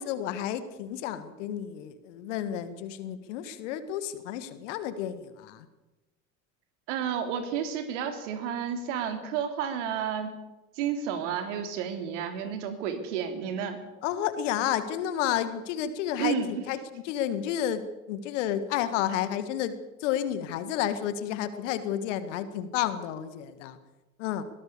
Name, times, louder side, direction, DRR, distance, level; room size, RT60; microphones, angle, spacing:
voice 1, 0.0-5.7 14.0-19.7 20.0-23.8 24.2-24.4, left 10 dB, 60° left, 12 dB, 1.9 m, -31 dB
voice 2, 6.9-10.4 10.8-13.8 16.2-16.6, right 7 dB, 60° right, 8 dB, 3.3 m, -31 dB
22.0 x 18.5 x 7.0 m, 1.1 s
figure-of-eight pair, 60°, 40 cm